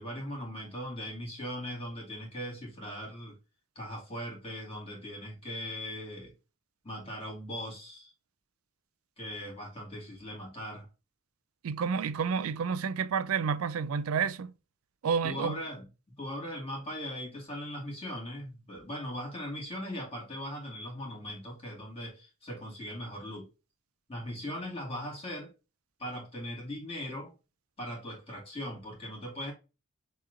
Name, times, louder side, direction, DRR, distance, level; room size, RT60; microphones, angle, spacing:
voice 1, 0.0-3.4 3.8-6.3 6.8-8.1 9.2-10.9 15.2-15.9 16.2-23.5 24.1-25.5 26.0-27.3 27.8-29.5, equal, 25° left, 2.1 m, -39 dB
voice 2, 11.6-14.5 15.0-15.6, right 6 dB, 75° right, 0.4 m, -30 dB
6.3 x 3.0 x 2.5 m
head